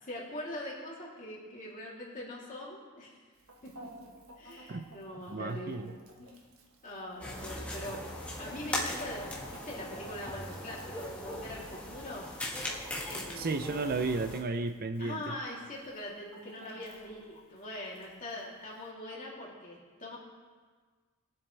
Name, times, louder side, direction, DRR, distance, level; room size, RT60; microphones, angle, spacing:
voice 1, 0.0-3.1 3.6-3.9 4.4-5.9 6.2-6.4 6.8-12.3 13.1-13.8 15.0-20.2, left 1 dB, 35° left, -5 dB, 3.1 m, -42 dB
Chicken rooster, 3.3-18.9, right 2 dB, 70° right, 1.4 m, -56 dB
voice 2, 5.3-6.0 13.4-15.4, right 3 dB, 40° right, 8 dB, 0.5 m, -33 dB
sound 1, 7.2-14.4, left 1 dB, 5° left, 1.7 m, -39 dB
22.0 x 7.8 x 3.4 m, 1.5 s
head